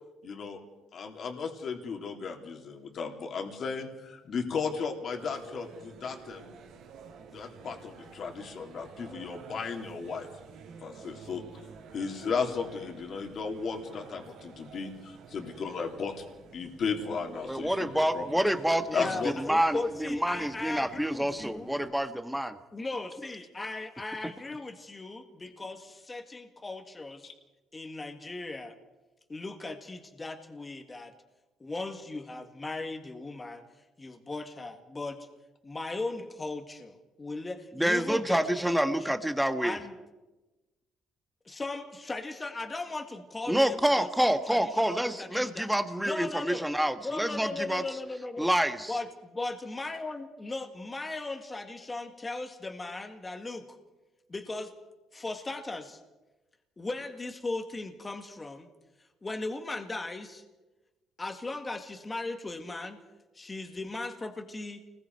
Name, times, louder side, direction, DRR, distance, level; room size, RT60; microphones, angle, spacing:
voice 1, 0.2-0.6 0.9-6.5 7.3-10.3 10.8-11.4 11.9-16.2 16.5-18.2 18.9-19.3 27.2-27.3, left 5 dB, 50° left, 3 dB, 3.0 m, -35 dB
sound 1, 5.2-21.9, right 6 dB, 85° right, 3.3 m, -50 dB
voice 2, 17.5-22.6 37.8-39.8 43.5-47.8 48.4-48.9, right 1 dB, 5° right, 8 dB, 1.4 m, -27 dB
voice 3, 18.9-21.8 22.7-27.3 27.7-28.8 29.3-31.1 31.6-33.6 34.0-35.2 35.6-39.1 39.6-39.9 41.5-45.7 46.0-46.7 47.0-48.5 48.9-53.7 54.3-54.7 55.1-56.0 56.8-58.7 59.2-60.4 61.2-63.0 63.4-64.8, left 2 dB, 20° left, 5 dB, 2.0 m, -37 dB
29.0 x 20.5 x 4.7 m, 1.1 s
cardioid pair, 120°, 0 cm